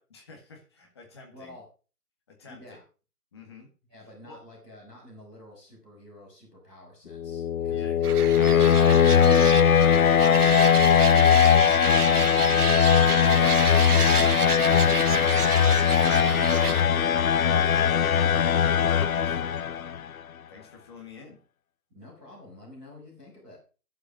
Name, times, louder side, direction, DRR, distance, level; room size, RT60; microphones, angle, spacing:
voice 1, 0.0-1.6 2.3-2.8 3.3-3.7 4.2-4.4 7.7-8.3 12.1-19.9 20.5-21.4, left 3 dB, 15° left, 2 dB, 2.0 m, -49 dB
voice 2, 1.3-1.6 2.4-2.8 3.9-11.7 21.9-23.6, left 1 dB, ahead, -15 dB, 1.1 m, -49 dB
sound 1, 7.1-20.0, left 8 dB, 65° left, 0.6 m, -20 dB
sound 2, 8.0-16.8, right 7 dB, 75° right, 0.9 m, -31 dB
11.5 x 7.9 x 6.0 m, 0.37 s
hypercardioid pair, 175°, 46 cm